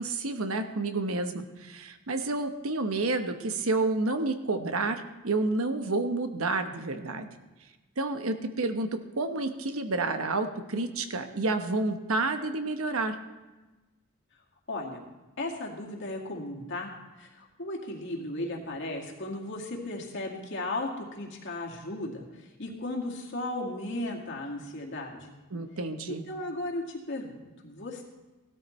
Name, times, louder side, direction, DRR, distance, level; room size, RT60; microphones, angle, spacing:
voice 1, 0.0-7.3 8.0-13.2 25.5-26.2, right 2 dB, 80° right, 7 dB, 1.0 m, -30 dB
voice 2, 14.7-15.0 15.4-16.9 17.2-22.2 22.6-25.3 26.3-28.0, left 2 dB, 60° left, 0 dB, 2.1 m, -35 dB
16.5 x 13.0 x 3.2 m, 1.2 s
head